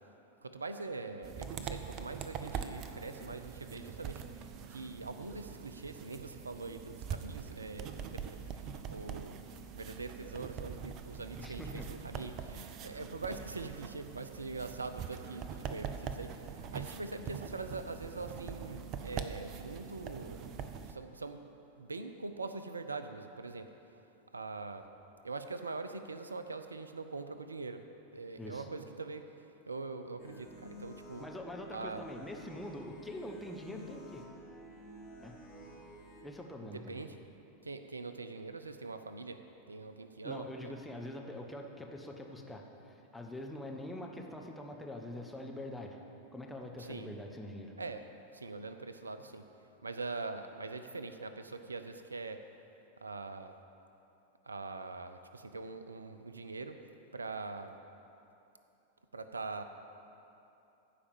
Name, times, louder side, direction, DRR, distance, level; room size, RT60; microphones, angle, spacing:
voice 1, 0.4-4.2 4.7-9.4 9.7-21.4 21.8-23.7 24.3-24.9 25.2-27.8 28.1-29.2 29.7-31.3 31.7-32.0 36.6-37.2 37.6-39.4 39.7-40.7 46.8-47.1 47.8-48.0 48.3-49.4 49.8-52.4 53.0-53.5 54.4-56.8 57.1-57.7 59.1-59.6, right 3 dB, 75° right, 9 dB, 0.6 m, -43 dB
sound 1, 1.2-20.9, right 7 dB, 35° right, 0.6 m, -43 dB
voice 2, 11.4-11.9 28.4-28.7 31.2-34.3 35.2-35.3 36.2-37.0 40.2-46.0 46.3-47.7, left 1 dB, 5° left, 0 dB, 1.2 m, -44 dB
sound 2, 30.2-36.2, equal, 25° left, 2.3 m, -51 dB
14.5 x 5.0 x 7.1 m, 3.0 s
figure-of-eight pair, 90°, 0 cm